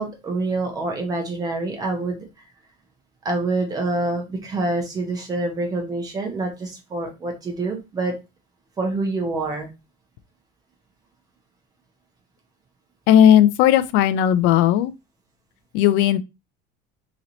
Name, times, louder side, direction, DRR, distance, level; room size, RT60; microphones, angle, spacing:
voice 1, 0.0-2.2 3.2-8.1 8.8-9.7, right 2 dB, 20° right, 0.9 m, -26 dB
voice 2, 13.1-14.9 15.7-16.2, left 10 dB, 65° left, 0.4 m, -16 dB
3.0 x 3.0 x 3.8 m
cardioid pair, 180°, 20 cm